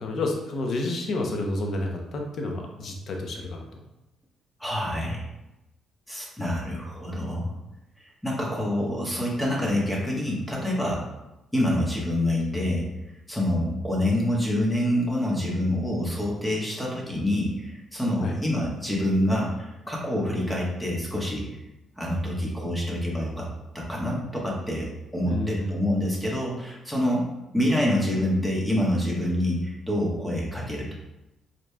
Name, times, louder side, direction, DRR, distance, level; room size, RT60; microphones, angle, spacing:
voice 1, 0.0-3.8 18.2-18.3 25.2-25.7, left 2 dB, 60° left, 2 dB, 0.7 m, -30 dB
voice 2, 4.6-5.3 6.1-7.5 8.0-11.0 11.5-12.9 13.3-21.5 22.0-23.5 23.7-27.3 27.5-30.9, left 1 dB, 5° left, -3 dB, 1.2 m, -26 dB
4.8 x 3.0 x 2.3 m, 0.96 s
cardioid pair, 90°, 0 cm